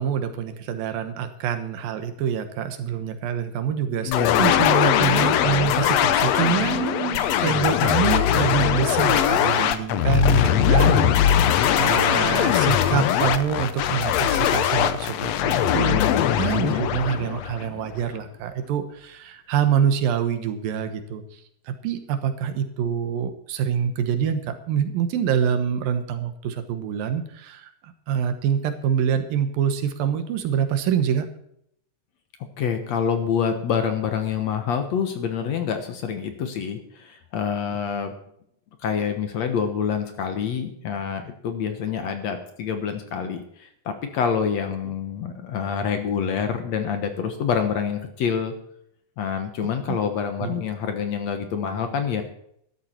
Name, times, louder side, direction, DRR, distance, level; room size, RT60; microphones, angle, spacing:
voice 1, 0.0-16.0 16.4-21.4 21.7-31.3 44.8-44.9 50.4-50.5, right 8 dB, 80° right, 9 dB, 3.0 m, -26 dB
sound 1, 4.1-18.0, left 10 dB, 80° left, 1.5 m, -21 dB
voice 2, 4.1-4.5 15.9-16.3 16.6-16.8 32.6-38.1 38.8-48.5 49.2-52.2, left 7 dB, 60° left, 7 dB, 2.1 m, -27 dB
13.5 x 11.5 x 4.4 m, 0.71 s
omnidirectional pair, 4.0 m